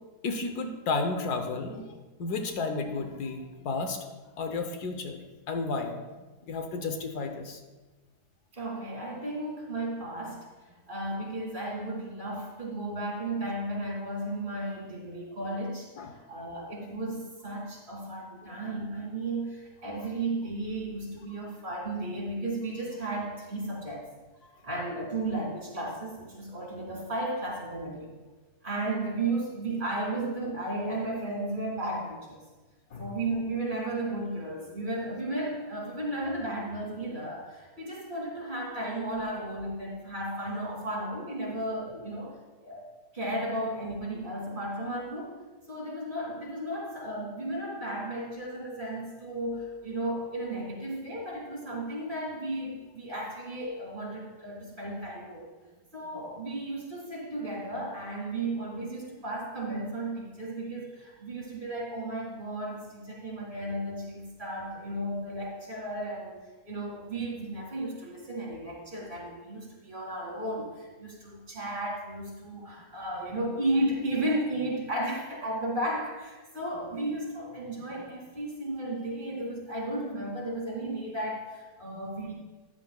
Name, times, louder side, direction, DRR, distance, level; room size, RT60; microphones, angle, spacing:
voice 1, 0.2-1.9 2.2-4.0 4.4-5.2 5.5-5.9 6.5-7.6 16.0-16.1 32.9-33.1 82.1-82.2, left 3 dB, 75° left, 5 dB, 1.4 m, -32 dB
voice 2, 8.5-10.5 10.9-15.9 16.3-24.1 24.6-28.2 28.6-32.4 33.0-42.8 43.1-45.4 45.7-55.5 55.9-66.4 66.6-82.3, right 1 dB, 30° right, -3 dB, 2.5 m, -34 dB
13.5 x 10.5 x 2.3 m, 1.2 s
omnidirectional pair, 1.7 m